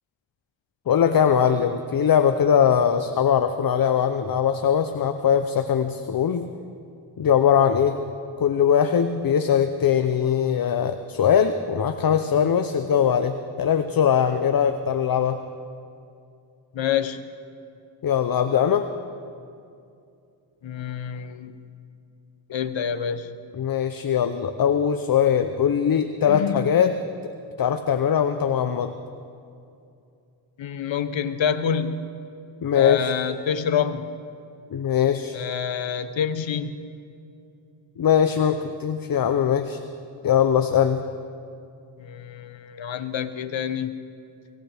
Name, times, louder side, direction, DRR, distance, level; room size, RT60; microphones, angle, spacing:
voice 1, 0.9-6.5 7.2-8.0 8.4-15.4 18.0-18.9 23.6-26.9 27.6-28.9 32.6-33.1 34.7-35.4 38.0-39.8 40.2-41.1, left 8 dB, 45° left, 9 dB, 0.7 m, -21 dB
voice 2, 16.7-17.2 20.6-21.6 22.5-23.4 26.3-26.7 30.6-32.1 32.7-34.1 35.3-36.7 42.0-44.0, left 8 dB, 65° left, 11 dB, 1.0 m, -27 dB
23.5 x 17.0 x 3.5 m, 2.5 s
cardioid pair, 70°, 48 cm